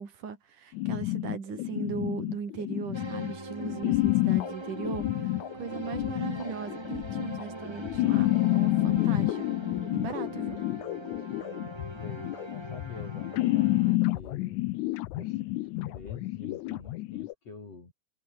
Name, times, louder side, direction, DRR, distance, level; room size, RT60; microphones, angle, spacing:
voice 1, 0.0-9.5 9.9-10.6, right 6 dB, 75° right, 5.3 m, -38 dB
sound 1, 0.8-17.3, left 18 dB, 80° left, 2.0 m, -29 dB
sound 2, 2.9-14.0, right 2 dB, 20° right, 0.8 m, -42 dB
voice 2, 12.0-14.7 15.1-15.5 15.8-17.9, left 3 dB, 50° left, 7.3 m, -47 dB
omnidirectional pair, 3.6 m